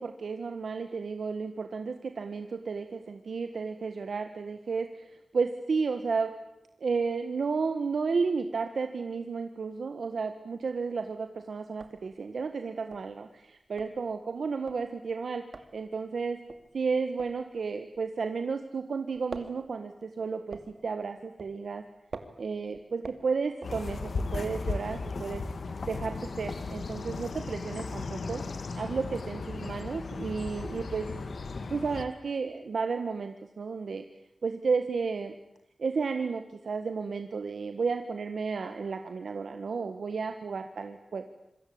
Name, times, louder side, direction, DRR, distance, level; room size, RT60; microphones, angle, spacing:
voice 1, 0.0-6.3 6.8-15.4 15.7-16.4 16.7-21.8 22.4-25.4 25.9-28.4 28.8-31.1 31.7-34.0 34.4-35.3 35.8-41.3, right 5 dB, 90° right, 7 dB, 1.5 m, -32 dB
sound 1, 10.4-11.0 11.3-11.4 11.6-18.7 19.0-24.3, right 4 dB, 70° right, 2.5 m, -47 dB
sound 2, 23.6-32.1, left 3 dB, 75° left, 2.0 m, -36 dB
27.0 x 23.5 x 8.8 m, 0.84 s
wide cardioid pair, 100°, 0 cm